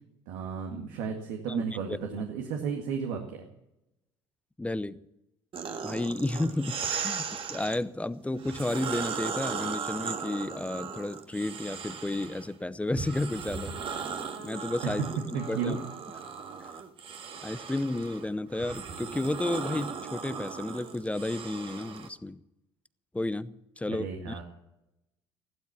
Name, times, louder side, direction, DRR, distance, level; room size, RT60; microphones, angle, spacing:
voice 1, 0.3-3.5 14.8-14.9 15.3-15.9 23.9-24.4, right 6 dB, 65° right, 2.0 m, -33 dB
voice 2, 1.5-2.0 4.6-5.0 5.8-13.7 14.4-15.0 15.5-15.8 17.4-22.4 23.1-24.4, left 2 dB, 10° left, 0.8 m, -32 dB
sound 1, 5.5-7.8 8.4-12.5 12.9-22.1, right 6 dB, 40° right, 1.8 m, -37 dB
15.5 x 12.0 x 7.2 m
figure-of-eight pair, 60°, 14 cm